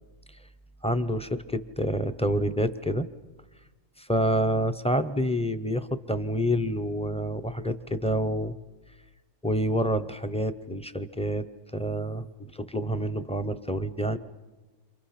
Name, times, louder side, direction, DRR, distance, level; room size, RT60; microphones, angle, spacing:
voice 1, 0.8-3.1 4.0-8.6 9.4-11.5 11.7-12.3 12.5-14.2, equal, 10° left, 11 dB, 0.4 m, -28 dB
29.5 x 26.5 x 5.8 m, 1.2 s
omnidirectional pair, 1.4 m